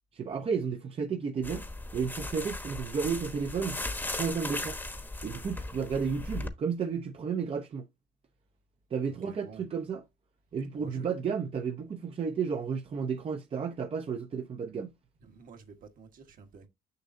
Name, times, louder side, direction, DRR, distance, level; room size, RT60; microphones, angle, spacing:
voice 1, 0.1-1.6 1.9-3.8 4.1-4.8 5.2-7.9 8.9-10.0 10.5-14.9, right 6 dB, 35° right, 0.7 m, -32 dB
sound 1, 1.4-6.5, left 2 dB, 10° left, 1.0 m, -37 dB
voice 2, 9.0-9.7 10.8-11.1 15.2-16.7, right 5 dB, 55° right, 1.4 m, -51 dB
6.6 x 6.0 x 2.7 m
cardioid pair, 110°, 17 cm